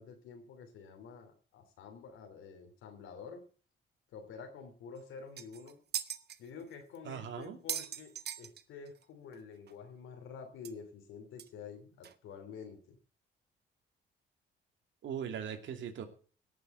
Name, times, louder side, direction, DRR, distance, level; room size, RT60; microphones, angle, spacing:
voice 1, 0.0-3.4 4.1-5.8 6.4-13.0, left 5 dB, 85° left, 5 dB, 2.9 m, -49 dB
sound 1, 5.0-5.1 5.4-6.4 6.9-7.0 7.4-9.0 9.3-9.4 9.7-9.8 10.6-10.7 11.4-11.5 12.0-12.1, right 9 dB, 55° right, 1.0 m, -39 dB
voice 2, 7.0-7.6 15.0-16.0, right 8 dB, 70° right, 5 dB, 2.6 m, -39 dB
17.5 x 7.0 x 6.7 m, 0.41 s
cardioid pair, 90°, 20 cm